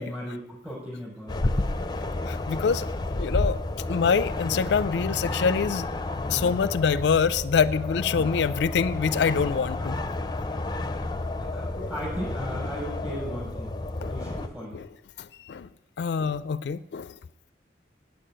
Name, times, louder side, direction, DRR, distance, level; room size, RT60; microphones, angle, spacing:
voice 1, 0.0-1.5 4.4-4.6 6.3-6.5 8.1-8.3 11.4-13.8 14.1-14.8, equal, 10° right, -6 dB, 5.9 m, -37 dB
sound 1, 1.3-14.5, left 2 dB, 25° left, 0.6 m, -31 dB
voice 2, 2.3-3.6 3.9-5.9 6.3-10.0 14.0-14.1 15.2-15.7 16.0-17.1, left 6 dB, 70° left, 16 dB, 0.4 m, -25 dB
9.2 x 8.5 x 9.0 m, 0.93 s
head